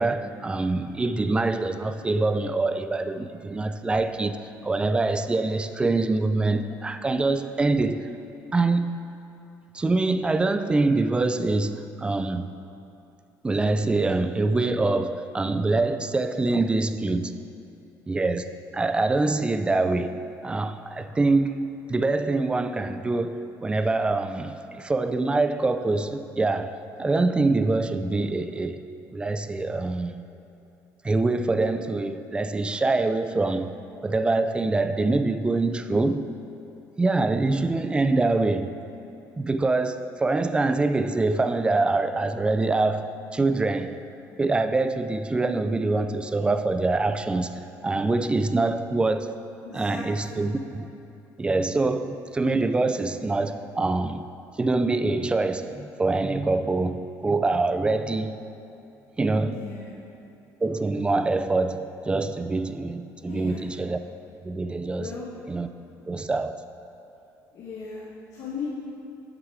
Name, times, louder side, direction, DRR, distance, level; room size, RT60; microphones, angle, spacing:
voice 1, 0.0-8.1 8.5-9.0 9.7-12.5 13.4-17.4 18.1-28.8 29.1-30.2 31.0-33.7 34.0-36.3 37.0-38.8 39.4-44.0 44.4-49.4 49.7-50.9 51.4-54.2 54.6-58.4 59.2-59.6 60.6-64.0 64.4-65.1 65.5-65.7 66.1-66.6, right 3 dB, 15° right, 10 dB, 0.3 m, -25 dB
voice 2, 49.6-50.5 59.4-60.0 63.3-63.6 65.0-65.3 67.5-68.7, left 5 dB, 65° left, -6 dB, 1.3 m, -37 dB
7.5 x 6.3 x 4.7 m, 2.7 s
cardioid pair, 115°, 7 cm